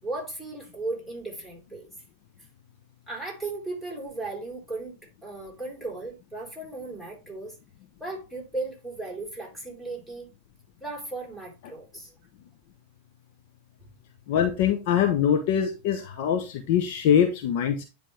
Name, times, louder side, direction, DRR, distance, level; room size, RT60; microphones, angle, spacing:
voice 1, 0.0-1.9 3.1-7.6 8.0-10.3 10.8-12.1, right 2 dB, 5° left, 4.1 m, -36 dB
voice 2, 14.3-17.8, left 9 dB, 55° left, 0.9 m, -23 dB
10.0 x 3.4 x 3.3 m
hypercardioid pair, 95°, 0 cm